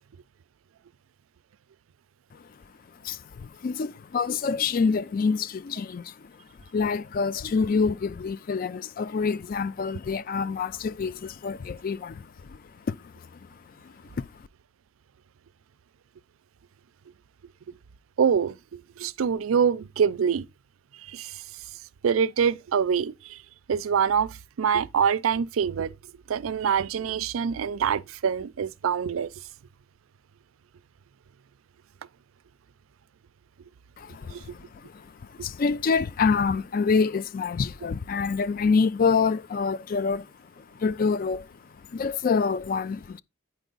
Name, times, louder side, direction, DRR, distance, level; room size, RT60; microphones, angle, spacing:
voice 1, 3.0-6.3 6.7-12.6 12.9-13.3 13.8-14.3 34.0-40.3 40.6-41.5 41.9-43.2, left 5 dB, 45° left, 0.3 m, -27 dB
voice 2, 18.2-20.5 21.0-21.4 22.0-23.4 23.7-25.9 26.3-29.3 34.3-34.4, right 7 dB, 85° right, 0.4 m, -25 dB
8.9 x 4.6 x 3.9 m
head